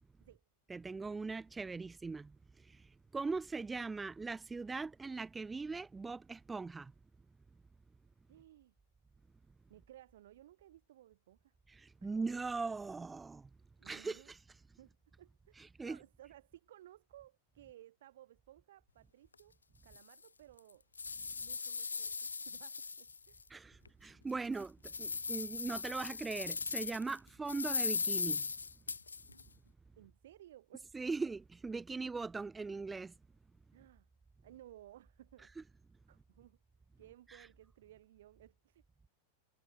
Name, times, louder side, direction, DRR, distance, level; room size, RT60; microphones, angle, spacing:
voice 1, 0.7-2.8 3.1-6.9 11.7-13.5 13.9-14.2 15.8-16.0 23.5-28.5 30.9-33.1, right 4 dB, 10° right, 0.6 m, -40 dB
voice 2, 8.3-8.7 9.7-11.6 12.0-12.1 13.8-14.3 14.8-20.9 21.4-23.4 30.0-30.9 31.9-32.0 33.7-34.1 34.4-35.5 36.1-36.6 37.0-38.8, right 13 dB, 60° right, 5.6 m, -59 dB
sound 1, 19.3-19.4 19.9-20.0 20.6-23.4 23.8-23.9 24.4-27.2 27.5-29.4, left 4 dB, 75° left, 0.8 m, -38 dB
figure-of-eight pair, 90°, 0 cm